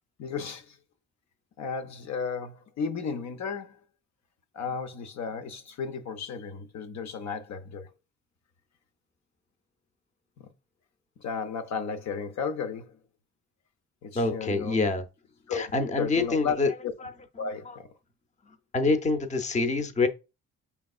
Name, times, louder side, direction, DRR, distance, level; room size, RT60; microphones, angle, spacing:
voice 1, 0.2-0.8 1.6-3.8 4.5-7.9 10.4-10.5 11.2-13.0 14.0-14.8 15.5-15.6 16.0-16.6 16.8-16.9 17.4-17.9, left 6 dB, 65° left, 0.7 m, -34 dB
voice 2, 14.1-15.0 15.5-16.7 18.7-20.1, left 3 dB, 25° left, 0.6 m, -26 dB
5.2 x 3.4 x 2.3 m
cardioid pair, 90°, 30 cm